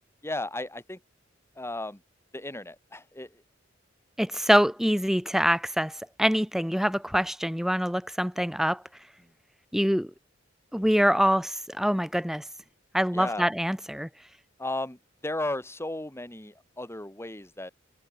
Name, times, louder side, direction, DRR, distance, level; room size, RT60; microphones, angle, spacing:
voice 1, 0.2-1.0 1.6-2.0 2.3-3.3 13.1-13.5 14.6-15.0 15.2-17.7, left 2 dB, 15° left, 2.3 m, -34 dB
voice 2, 4.2-8.8 9.7-10.1 10.7-12.4 12.9-14.1, equal, ahead, 3.1 m, -25 dB
head